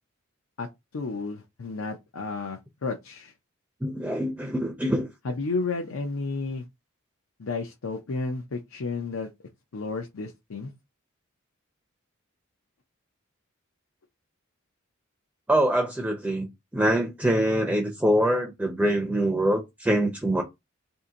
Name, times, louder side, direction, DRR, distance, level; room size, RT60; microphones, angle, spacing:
voice 1, 0.6-3.3 5.2-6.6 7.4-9.3 9.7-10.7, left 3 dB, 80° left, 0.6 m, -32 dB
voice 2, 3.8-5.1 15.5-20.4, right 1 dB, 5° right, 0.5 m, -24 dB
2.8 x 2.5 x 3.7 m
head